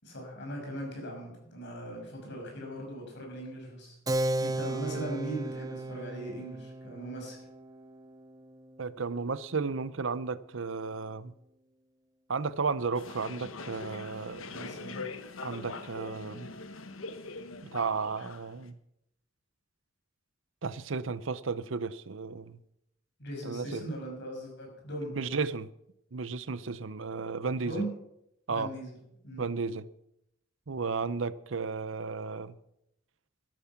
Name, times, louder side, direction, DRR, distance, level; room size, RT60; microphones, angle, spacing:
voice 1, 0.0-4.0 4.4-7.4 14.5-15.0 23.2-25.1 27.5-27.9 28.5-29.0 29.2-29.4, right 1 dB, 60° left, 6.1 m, -39 dB
Keyboard (musical), 4.1-10.2, right 2 dB, 20° right, 0.6 m, -36 dB
voice 2, 8.8-11.3 12.3-14.7 15.4-16.5 17.7-18.8 20.6-22.6 23.4-23.8 25.1-25.7 26.1-27.8 28.5-28.7 29.4-29.9 30.7-32.6, right 4 dB, 70° right, 0.7 m, -34 dB
sound 1, 12.9-18.7, left 3 dB, 85° left, 1.1 m, -42 dB
13.0 x 12.5 x 5.9 m
head